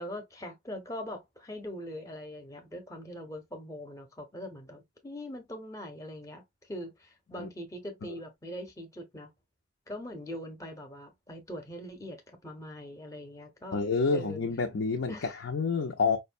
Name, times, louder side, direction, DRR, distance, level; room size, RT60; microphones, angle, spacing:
voice 1, 0.0-9.3 9.9-13.8 14.1-14.4 15.1-15.4, equal, 15° left, 0.6 m, -42 dB
voice 2, 13.7-16.2, left 4 dB, 85° left, 0.5 m, -28 dB
5.0 x 2.1 x 2.5 m
head